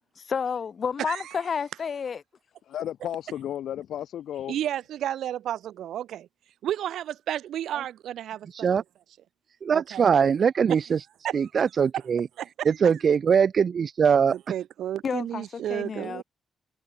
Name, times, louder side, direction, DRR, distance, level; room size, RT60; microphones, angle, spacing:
voice 1, 0.2-2.2 15.0-16.2, left 6 dB, 50° left, 1.3 m, -30 dB
voice 2, 2.7-4.6, left 11 dB, 80° left, 1.9 m, -33 dB
voice 3, 4.5-6.3 6.6-8.7 9.7-10.1 11.2-11.4 11.9-12.1 12.4-12.9 14.3-16.2, right 11 dB, 85° right, 3.0 m, -32 dB
voice 4, 9.6-11.0 11.3-12.3 12.7-14.3, right 7 dB, 50° right, 0.4 m, -22 dB
cardioid pair, 105°, 0 cm